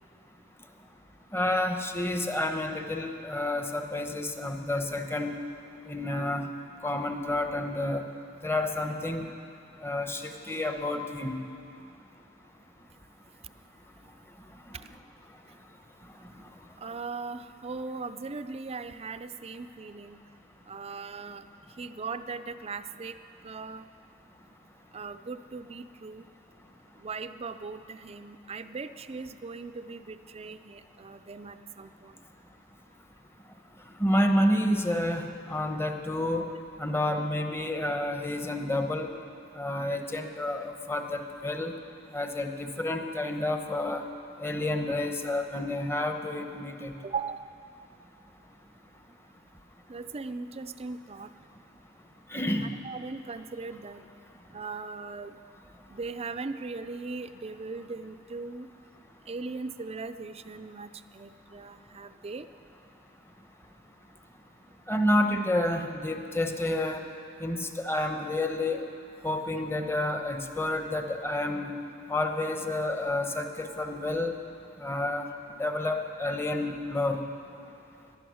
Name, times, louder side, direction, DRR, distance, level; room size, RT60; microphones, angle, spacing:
voice 1, 1.3-5.4 5.9-6.5 6.8-8.0 8.4-9.3 9.8-11.4 34.0-36.5 36.8-39.1 39.6-41.7 42.1-44.1 44.4-46.9 52.3-52.7 64.9-67.0 67.4-68.9 69.2-71.8 72.1-74.3 74.8-75.3 75.6-77.2, left 1 dB, 10° left, 5 dB, 0.9 m, -29 dB
voice 2, 16.8-20.2 20.7-21.4 21.8-23.2 23.4-23.9 24.9-26.2 27.0-32.1 47.0-47.5 49.9-51.3 52.6-54.1 54.5-55.3 55.9-58.7 59.3-62.5, right 4 dB, 30° right, 11 dB, 0.5 m, -39 dB
18.5 x 12.0 x 6.3 m, 2.5 s
head